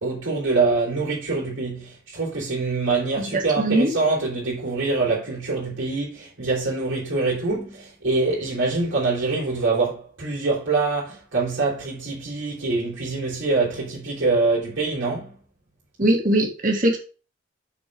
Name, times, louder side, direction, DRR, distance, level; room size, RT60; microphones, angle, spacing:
voice 1, 0.0-15.3, right 3 dB, 90° right, 3.7 m, -24 dB
voice 2, 3.2-3.9 16.0-17.0, right 1 dB, 45° right, 1.9 m, -21 dB
6.9 x 4.6 x 6.2 m
head